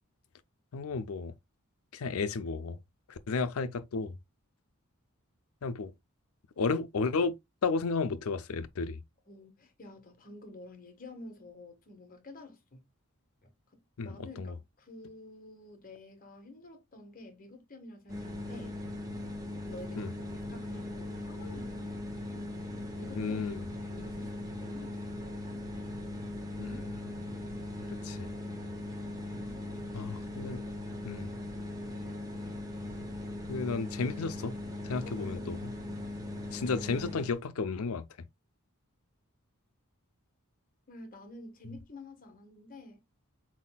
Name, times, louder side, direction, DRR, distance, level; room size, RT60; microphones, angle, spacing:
voice 1, 0.7-1.3 1.9-2.8 3.1-4.2 5.6-5.9 6.6-7.3 7.6-9.0 14.0-14.5 20.0-20.1 23.2-23.7 26.6-27.0 28.0-28.3 29.9-30.6 31.0-31.3 33.5-34.5 34.8-35.6 36.5-38.0, left 4 dB, 80° left, 0.5 m, -33 dB
voice 2, 9.3-12.8 13.7-18.7 19.6-21.9 22.9-23.4 23.8-25.4 29.4-30.1 35.0-35.4 40.9-43.0, left 2 dB, 40° left, 1.2 m, -50 dB
sound 1, 18.1-37.4, left 1 dB, 15° right, 1.0 m, -39 dB
4.3 x 4.1 x 2.2 m
head